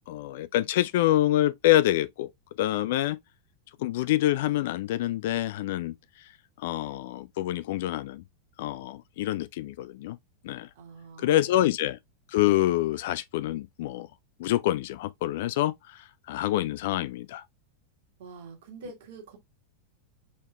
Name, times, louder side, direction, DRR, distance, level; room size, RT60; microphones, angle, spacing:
voice 1, 0.1-2.3 2.6-3.2 3.8-5.9 6.6-8.2 8.6-10.2 10.4-10.7 11.2-12.0 12.3-14.1 14.4-17.4, left 14 dB, 55° left, 0.3 m, -26 dB
voice 2, 10.7-11.6 18.2-19.4, right 4 dB, 55° right, 1.6 m, -46 dB
6.3 x 3.6 x 2.2 m
figure-of-eight pair, 90°, 0 cm